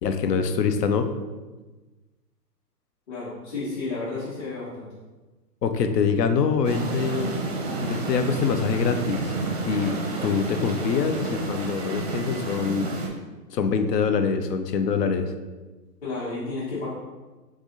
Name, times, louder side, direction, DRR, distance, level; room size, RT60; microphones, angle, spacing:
voice 1, 0.0-1.1 5.6-7.3 7.8-9.3 9.7-9.9 10.2-12.9 13.5-15.3, left 5 dB, 70° left, 8 dB, 0.7 m, -24 dB
voice 2, 3.1-4.9 16.0-16.9, left 3 dB, 40° left, -10 dB, 1.4 m, -32 dB
sound 1, 6.6-13.1, right 2 dB, 25° right, 0.5 m, -30 dB
3.7 x 3.4 x 3.9 m, 1.2 s
hypercardioid pair, 140°, 50 cm